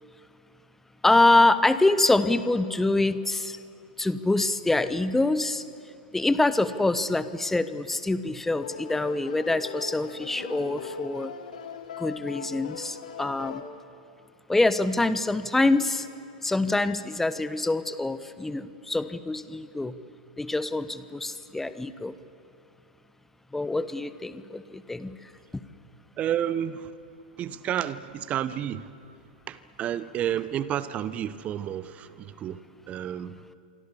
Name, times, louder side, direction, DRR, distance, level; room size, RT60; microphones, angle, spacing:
voice 1, 1.0-3.6 4.0-5.6 6.1-11.3 12.0-13.6 14.5-16.1 16.4-19.9 20.4-22.1 23.5-25.1, left 2 dB, 5° left, 14 dB, 1.0 m, -25 dB
sound 1, 8.6-13.6, left 7 dB, 65° left, 2.3 m, -39 dB
voice 2, 26.2-26.9 27.4-28.9 29.5-32.6 32.9-33.4, right 10 dB, 30° right, 15 dB, 1.0 m, -30 dB
27.0 x 25.0 x 7.1 m, 2.5 s
figure-of-eight pair, 95°, 5 cm